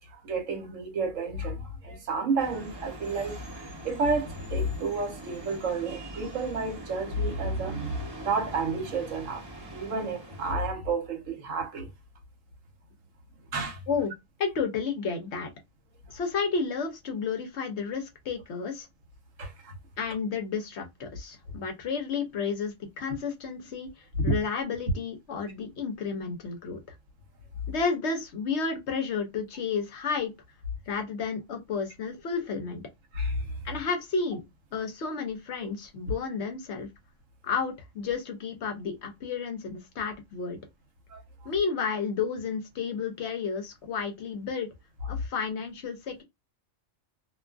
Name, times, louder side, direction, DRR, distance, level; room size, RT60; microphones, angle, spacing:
voice 1, 0.1-9.4 9.7-11.9 13.5-13.8 19.4-19.7 24.2-24.4 33.1-33.4 41.1-41.2, right 3 dB, 70° right, 1.2 m, -30 dB
sound 1, 2.4-10.5, right 1 dB, 20° right, 0.7 m, -42 dB
voice 2, 14.4-15.5 16.1-18.9 20.0-26.8 27.7-30.3 30.9-32.8 33.6-34.4 34.7-36.9 37.4-40.6 41.4-44.7 45.1-46.2, left 5 dB, 65° left, 0.8 m, -31 dB
2.5 x 2.3 x 2.2 m
omnidirectional pair, 1.4 m